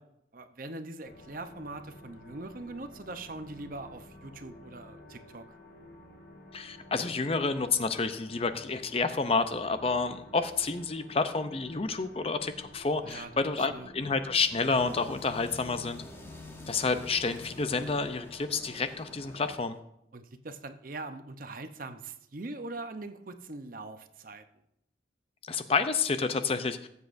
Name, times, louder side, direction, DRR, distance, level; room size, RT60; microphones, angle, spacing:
voice 1, 0.3-5.6 13.0-13.9 20.1-24.4, right 2 dB, 50° right, 9 dB, 0.7 m, -42 dB
sound 1, 1.0-19.6, left 1 dB, 60° left, 1.3 m, -52 dB
voice 2, 6.5-16.0 16.7-19.8 25.4-26.8, left 4 dB, 30° left, 10 dB, 0.5 m, -29 dB
sound 2, 14.4-19.8, left 2 dB, 15° left, 0.9 m, -48 dB
18.0 x 8.1 x 2.6 m, 0.78 s
head